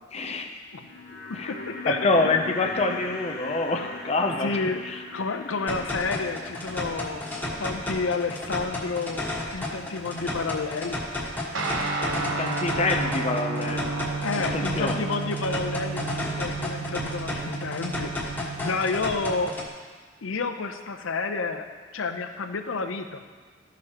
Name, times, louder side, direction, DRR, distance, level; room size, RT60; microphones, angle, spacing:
voice 1, 0.1-0.5 1.3-1.5 1.9-4.6 4.8-5.0 12.1-13.9 14.5-15.0, left 3 dB, 35° left, 5 dB, 0.6 m, -26 dB
sound 1, 0.6-10.9 11.1-11.2, left 3 dB, 50° left, 1.2 m, -41 dB
voice 2, 1.3-2.3 4.4-4.8 5.1-7.2 7.6-9.3 9.5-11.0 14.2-18.1 18.6-19.5 20.2-21.6 21.9-23.2, left 4 dB, 85° left, 7 dB, 0.6 m, -30 dB
sound 2, 5.7-19.7, left 1 dB, 10° left, 1.5 m, -33 dB
Guitar, 11.5-19.2, right 4 dB, 80° right, 0.9 m, -32 dB
14.0 x 6.1 x 2.9 m, 1.5 s
head